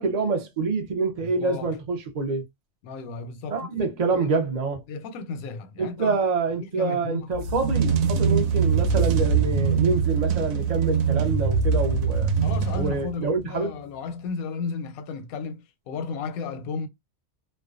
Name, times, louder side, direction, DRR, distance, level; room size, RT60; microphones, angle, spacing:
voice 1, 0.0-2.4 3.5-4.8 5.8-12.3 12.8-13.7, right 4 dB, 55° right, 0.4 m, -26 dB
voice 2, 1.2-1.8 2.8-4.3 4.9-6.2 6.8-7.3 12.4-16.9, left 5 dB, 90° left, 1.0 m, -34 dB
sound 1, 7.3-13.3, right 6 dB, 75° right, 1.0 m, -23 dB
2.4 x 2.2 x 2.4 m
omnidirectional pair, 1.5 m